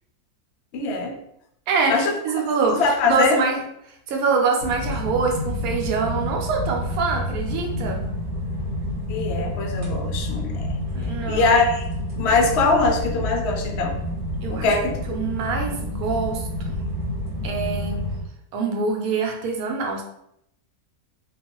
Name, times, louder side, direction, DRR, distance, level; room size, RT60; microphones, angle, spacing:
voice 1, 0.7-1.2 1.9-2.1 2.7-3.4 9.1-10.8 11.3-11.8 12.2-14.0 14.5-15.0, left 3 dB, 70° left, 2 dB, 0.6 m, -22 dB
voice 2, 1.7-2.8 3.1-3.6 4.1-8.0 10.9-11.5 14.4-14.7 15.1-16.7 17.4-18.0 18.5-20.0, right 4 dB, 75° right, 1 dB, 1.0 m, -24 dB
sound 1, 4.6-18.2, left 1 dB, 40° right, 0.9 m, -29 dB
2.4 x 2.3 x 2.8 m, 0.76 s
omnidirectional pair, 1.6 m